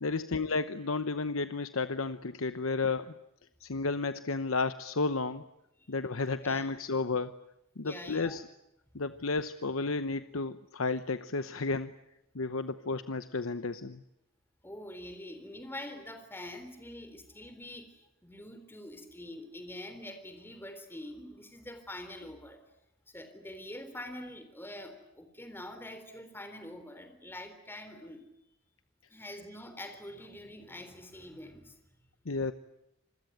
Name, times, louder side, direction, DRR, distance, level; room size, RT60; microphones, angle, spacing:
voice 1, 0.0-3.2 3.6-5.5 5.9-7.3 7.8-8.5 8.9-11.9 12.3-14.0 32.3-32.5, left 3 dB, 85° left, 11 dB, 0.9 m, -32 dB
voice 2, 7.8-8.4 14.6-22.7 23.1-28.3 29.1-31.8, left 1 dB, 10° left, 9 dB, 3.6 m, -45 dB
27.0 x 21.0 x 9.2 m, 0.85 s
head